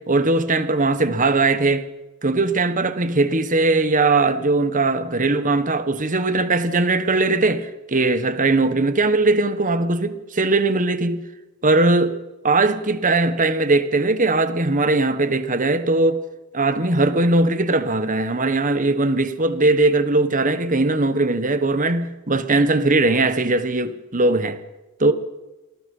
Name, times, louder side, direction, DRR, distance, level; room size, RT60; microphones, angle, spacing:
voice 1, 0.0-1.9 2.2-11.2 11.6-12.2 12.4-16.2 16.5-24.6 25.0-25.1, right 2 dB, 35° right, 1.4 m, -19 dB
28.0 x 19.5 x 5.6 m
head